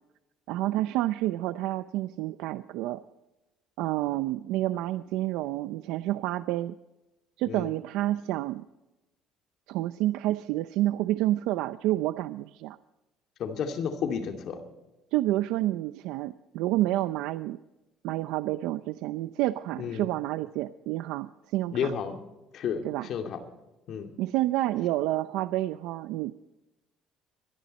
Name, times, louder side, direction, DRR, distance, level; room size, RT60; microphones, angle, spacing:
voice 1, 0.5-3.0 3.8-6.8 7.4-8.7 9.7-12.8 15.1-17.6 18.0-21.9 22.8-23.1 24.2-26.4, right 15 dB, 90° right, 13 dB, 0.5 m, -29 dB
voice 2, 13.4-14.6 19.8-20.1 21.7-22.2 22.5-23.4 23.9-24.1, left 7 dB, 60° left, 5 dB, 2.5 m, -32 dB
25.5 x 11.0 x 4.2 m, 1.0 s
cardioid pair, 120°, 0 cm